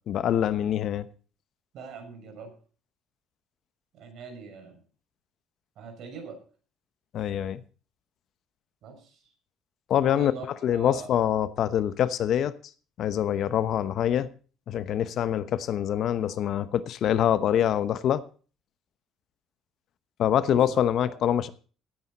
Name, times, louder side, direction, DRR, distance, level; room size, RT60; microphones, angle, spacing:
voice 1, 0.1-1.1 7.1-7.6 9.9-10.3 10.6-12.5 13.0-14.3 14.7-18.2 20.2-21.5, left 10 dB, 60° left, 0.9 m, -25 dB
voice 2, 1.7-2.5 3.9-4.8 5.8-6.4 8.8-9.2 10.0-11.2 20.5-21.2, right 5 dB, 65° right, 6.2 m, -42 dB
16.5 x 9.6 x 4.2 m
supercardioid pair, 70°, 0 cm